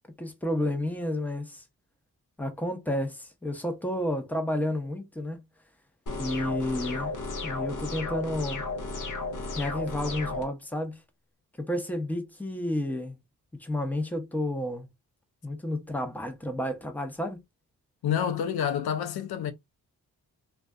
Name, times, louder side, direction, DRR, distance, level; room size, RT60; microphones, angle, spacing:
voice 1, 0.2-1.6 2.4-5.5 6.2-7.1 7.4-8.6 9.5-11.0 11.6-13.2 13.6-14.9 15.4-17.4, left 1 dB, 5° left, 0.7 m, -31 dB
sound 1, 6.1-10.4, left 3 dB, 55° left, 0.8 m, -34 dB
voice 2, 18.0-19.5, left 9 dB, 90° left, 0.5 m, -28 dB
2.5 x 2.3 x 2.2 m
cardioid pair, 55°, 36 cm